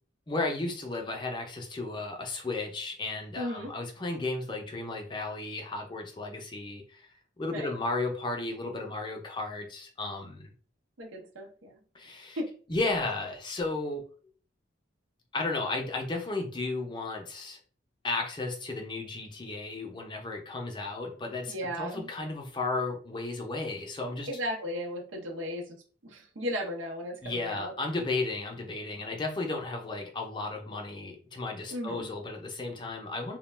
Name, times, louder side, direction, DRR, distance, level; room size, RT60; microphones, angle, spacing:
voice 1, 0.3-7.1 7.4-10.5 11.9-12.4 12.7-14.0 15.3-17.6 18.0-24.3 27.2-33.4, left 3 dB, 25° left, 2 dB, 0.5 m, -34 dB
voice 2, 3.4-3.7 7.5-7.7 11.0-11.8 12.4-12.5 21.5-22.1 24.3-25.6 26.0-27.7 31.7-32.1, equal, 80° right, 1 dB, 0.7 m, -35 dB
2.2 x 2.1 x 3.1 m, 0.41 s
head